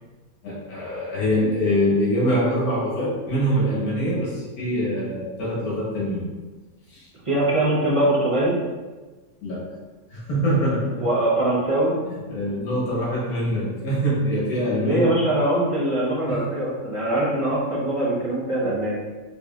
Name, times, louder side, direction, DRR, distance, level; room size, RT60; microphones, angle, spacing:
voice 1, 0.4-6.3 6.9-7.1 9.4-9.7 10.1-11.1 12.3-15.0 16.3-16.4, equal, 85° left, -6 dB, 1.6 m, -24 dB
voice 2, 7.2-8.5 11.0-11.9 14.8-19.0, right 1 dB, 30° right, -6 dB, 0.6 m, -22 dB
4.7 x 2.7 x 2.3 m, 1.3 s
omnidirectional pair, 1.5 m